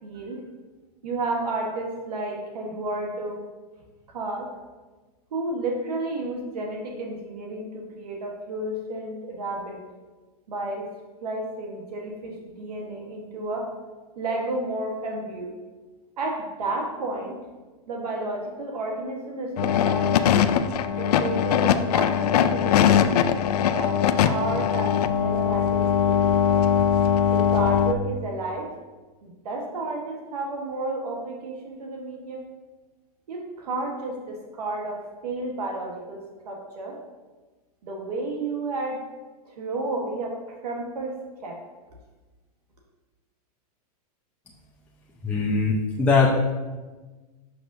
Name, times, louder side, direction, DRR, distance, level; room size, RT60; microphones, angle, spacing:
voice 1, 0.0-0.4 1.0-3.4 4.1-4.5 5.3-9.8 10.5-10.9 11.2-13.7 14.2-15.5 16.2-17.4 17.9-20.2 21.0-23.3 23.7-24.0 24.2-26.6 27.3-28.7 29.2-32.4 33.3-37.0 37.8-39.0 39.4-40.4 40.6-41.1 41.4-41.6, right 2 dB, 85° right, 0 dB, 1.3 m, -31 dB
sound 1, 19.6-27.9, left 9 dB, 80° left, 0.4 m, -21 dB
voice 2, 45.2-46.3, left 4 dB, 5° left, -5 dB, 0.5 m, -21 dB
6.7 x 6.0 x 2.6 m, 1.3 s
hypercardioid pair, 135°, 20 cm